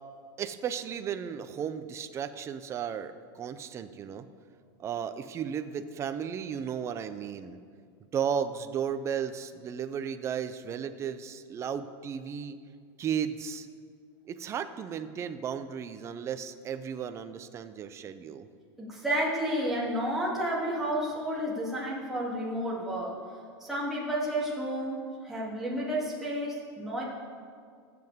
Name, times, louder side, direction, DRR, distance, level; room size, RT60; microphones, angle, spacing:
voice 1, 0.4-4.3 4.8-7.6 8.1-12.6 13.0-13.7 14.3-18.5, right 8 dB, 20° right, 10 dB, 0.5 m, -34 dB
voice 2, 18.8-23.2 23.6-27.0, right 1 dB, ahead, -7 dB, 2.8 m, -31 dB
23.0 x 7.7 x 3.6 m, 2.1 s
supercardioid pair, 150°, 13 cm